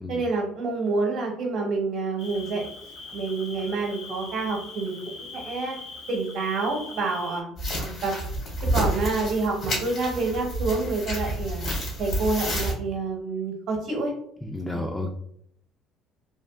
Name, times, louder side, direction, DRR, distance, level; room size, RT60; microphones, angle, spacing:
voice 1, 0.1-2.7 3.1-5.0 5.3-5.7 6.1-8.1 8.7-11.6 12.0-14.1 14.7-14.9, right 3 dB, 70° right, -1 dB, 0.8 m, -28 dB
Cricket, 2.2-7.4, left 4 dB, 75° left, 0.7 m, -41 dB
sound 1, 7.6-12.7, equal, 55° left, 1.4 m, -29 dB
voice 2, 14.4-15.1, left 2 dB, 10° left, 2 dB, 0.3 m, -31 dB
3.3 x 2.5 x 2.3 m, 0.70 s
supercardioid pair, 80°, 0 cm